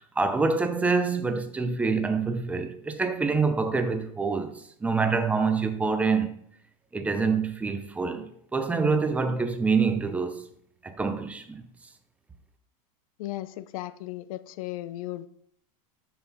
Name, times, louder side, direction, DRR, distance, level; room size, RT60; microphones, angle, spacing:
voice 1, 0.0-6.3 6.9-10.4 10.8-11.6, right 4 dB, 5° right, 0.5 m, -26 dB
voice 2, 13.2-15.3, left 15 dB, 65° left, 0.6 m, -36 dB
7.7 x 6.0 x 4.1 m
supercardioid pair, 160°, 19 cm